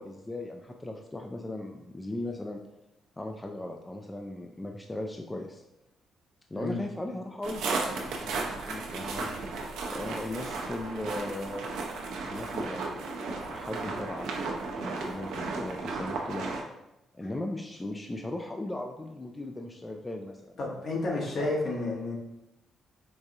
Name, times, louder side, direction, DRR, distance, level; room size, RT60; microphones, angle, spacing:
voice 1, 0.0-2.6 3.2-5.6 6.5-9.3 9.9-11.7 12.3-16.5 17.1-20.8 21.2-21.3, left 1 dB, 15° left, 2 dB, 0.3 m, -38 dB
sound 1, 7.4-16.6, right 3 dB, 85° right, 0.6 m, -34 dB
voice 2, 20.6-22.1, left 2 dB, 60° left, -2 dB, 1.1 m, -31 dB
4.6 x 2.4 x 2.7 m, 0.89 s
cardioid pair, 90°, 0 cm